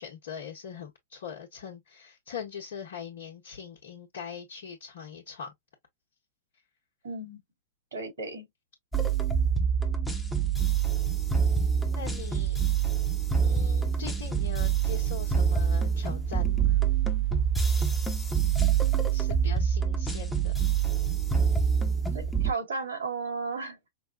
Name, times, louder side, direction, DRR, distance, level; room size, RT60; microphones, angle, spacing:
voice 1, 0.0-5.5 11.9-12.6 13.4-16.8 19.1-20.5, left 7 dB, 60° left, 1.1 m, -41 dB
voice 2, 7.0-7.4 7.9-8.4 18.8-18.9 22.1-23.8, right 4 dB, 70° right, 2.9 m, -34 dB
sound 1, 8.9-22.5, right 7 dB, 5° left, 1.0 m, -26 dB
5.2 x 2.3 x 2.3 m
figure-of-eight pair, 90°, 0 cm